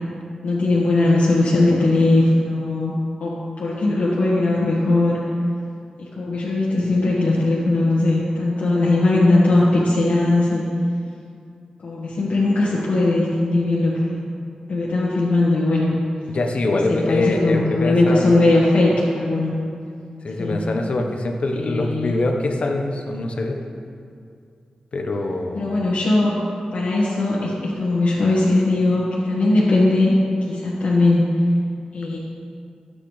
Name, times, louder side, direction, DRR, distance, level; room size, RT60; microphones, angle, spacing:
voice 1, 0.4-2.9 3.2-5.2 6.0-10.6 11.8-14.2 14.7-15.9 16.7-19.5 20.4-20.6 21.6-22.1 25.5-26.3 26.7-30.1 30.5-31.2 31.9-32.2, left 2 dB, 85° left, -7 dB, 1.6 m, -19 dB
voice 2, 16.3-18.4 20.2-23.6 24.9-25.8, left 2 dB, 60° left, 3 dB, 1.1 m, -24 dB
13.5 x 8.4 x 3.3 m, 2.3 s
wide cardioid pair, 95°, 2 cm